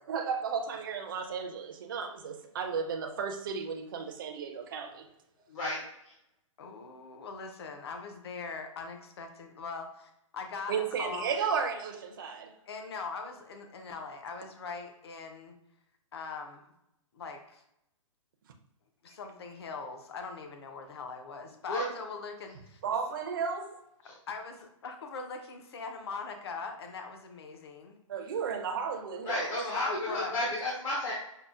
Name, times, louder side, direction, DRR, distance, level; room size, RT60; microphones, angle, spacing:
voice 1, 0.1-5.1 10.7-12.5 22.8-23.8 28.1-29.5, right 6 dB, 40° right, 3 dB, 0.4 m, -34 dB
voice 2, 5.5-6.1 21.7-21.8 24.0-24.1 29.2-31.1, left 1 dB, 70° left, -5 dB, 1.0 m, -32 dB
voice 3, 6.6-11.3 12.7-15.6 16.1-16.7 17.1-17.6 19.0-22.8 24.0-28.0 29.7-30.5, left 4 dB, 50° left, 4 dB, 0.6 m, -41 dB
5.3 x 2.0 x 2.4 m, 0.81 s
hypercardioid pair, 170°, 17 cm